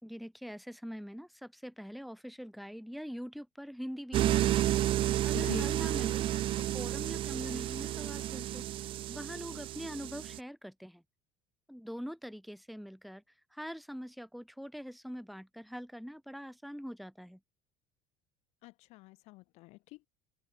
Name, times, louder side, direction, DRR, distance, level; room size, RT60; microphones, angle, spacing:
voice 1, 0.0-4.7 5.2-6.2 6.5-8.7 9.1-11.0 11.7-13.2 13.5-17.4, equal, ahead, 3.4 m, -43 dB
sound 1, 4.1-10.4, right 14 dB, 45° right, 3.0 m, -31 dB
voice 2, 5.3-5.7 18.6-20.1, left 21 dB, 60° left, 3.5 m, -45 dB
open air
cardioid pair, 155°, 13 cm